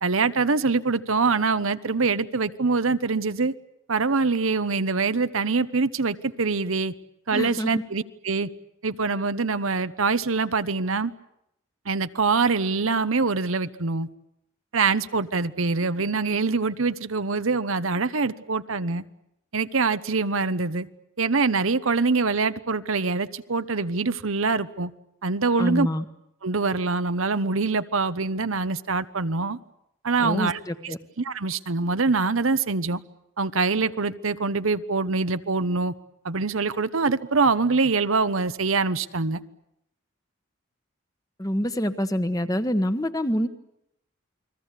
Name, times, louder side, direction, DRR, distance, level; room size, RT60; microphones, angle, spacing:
voice 1, 0.0-3.5 3.9-6.9 7.3-8.5 8.8-11.1 11.9-14.1 14.7-19.0 19.5-20.9 21.2-24.9 25.2-25.9 26.4-29.6 30.0-33.0 33.4-35.9 36.2-39.4, right 4 dB, 80° right, 12 dB, 1.0 m, -24 dB
voice 2, 7.3-7.8 25.6-26.0 30.2-31.0 41.4-43.5, equal, 15° left, 9 dB, 1.3 m, -26 dB
29.5 x 21.5 x 8.3 m, 0.79 s
head